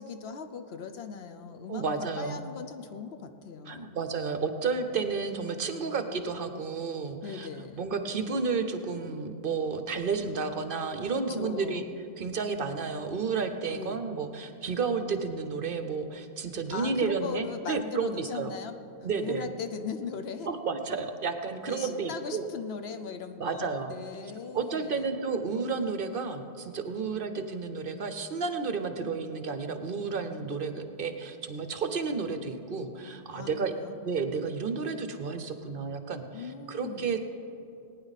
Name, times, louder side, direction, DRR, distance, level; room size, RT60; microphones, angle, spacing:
voice 1, 0.0-4.0 7.2-7.9 11.2-11.9 13.7-14.1 16.7-18.7 19.2-20.5 21.7-25.2 27.0-27.2 33.3-34.0 36.3-37.1, left 6 dB, 70° left, 7 dB, 1.0 m, -39 dB
voice 2, 1.7-2.4 3.7-7.5 7.8-11.8 12.2-18.5 19.0-19.5 20.5-22.5 23.4-24.0 24.5-33.7 34.0-37.2, right 5 dB, 55° right, 8 dB, 0.9 m, -32 dB
19.5 x 9.6 x 4.1 m, 2.7 s
omnidirectional pair, 1.1 m